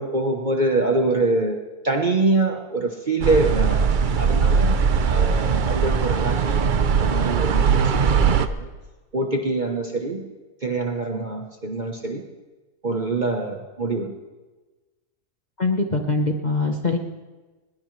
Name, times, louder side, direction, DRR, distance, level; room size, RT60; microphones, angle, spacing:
voice 1, 0.0-3.8 4.2-4.8 5.0-8.7 9.1-10.3 10.6-12.2 12.8-14.1, right 2 dB, 35° right, 3 dB, 1.0 m, -25 dB
sound 1, 3.2-8.5, right 6 dB, 80° right, 0.4 m, -20 dB
voice 2, 15.6-17.0, left 3 dB, 30° left, 2 dB, 0.9 m, -23 dB
20.5 x 19.5 x 3.2 m, 1.2 s
omnidirectional pair, 1.8 m